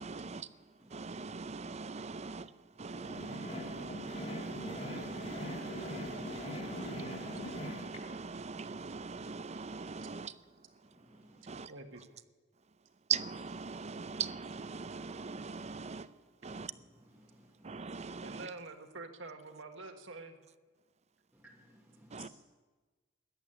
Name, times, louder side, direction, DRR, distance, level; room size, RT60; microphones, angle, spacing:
voice 1, 0.0-11.7 12.7-17.1 17.6-18.5 22.1-22.3, right 5 dB, 35° right, 14 dB, 0.6 m, -41 dB
sound 1, 2.8-8.0, left 1 dB, 35° left, 3.0 m, -42 dB
voice 2, 10.8-11.4 16.5-16.7 17.2-17.8 21.3-22.3, right 1 dB, 5° right, -2 dB, 1.2 m, -59 dB
voice 3, 11.7-12.0 18.2-20.4, right 3 dB, 70° right, 5 dB, 1.6 m, -46 dB
14.5 x 11.0 x 8.7 m, 1.3 s
head